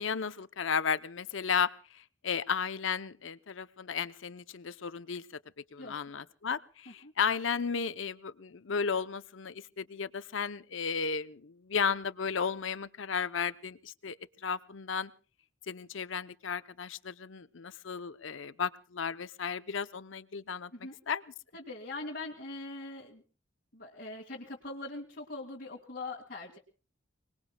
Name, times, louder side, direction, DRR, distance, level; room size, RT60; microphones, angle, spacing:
voice 1, 0.0-5.2 5.7-14.2 14.4-15.1 15.7-21.2, left 6 dB, 75° left, 14 dB, 0.7 m, -34 dB
voice 2, 21.5-23.2 23.7-26.6, left 2 dB, 50° left, -4 dB, 2.1 m, -42 dB
29.5 x 20.0 x 2.3 m, 0.35 s
head